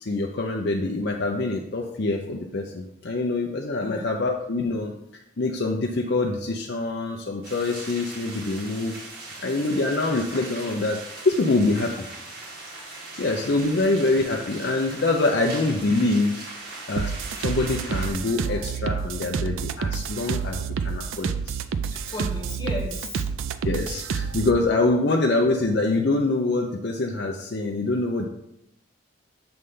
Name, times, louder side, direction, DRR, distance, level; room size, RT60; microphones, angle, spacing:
voice 1, 0.0-4.9 5.4-9.0 9.4-11.0 11.2-11.9 13.2-16.4 16.9-17.1 17.4-21.6 23.6-28.3, left 2 dB, 55° left, 2 dB, 0.5 m, -25 dB
sound 1, 7.4-18.1, right 2 dB, 50° right, 2.1 m, -39 dB
sound 2, 17.0-24.6, right 6 dB, 80° right, 0.4 m, -29 dB
voice 2, 21.9-23.3, left 2 dB, 20° left, -1 dB, 1.5 m, -34 dB
7.8 x 3.3 x 5.4 m, 0.81 s
head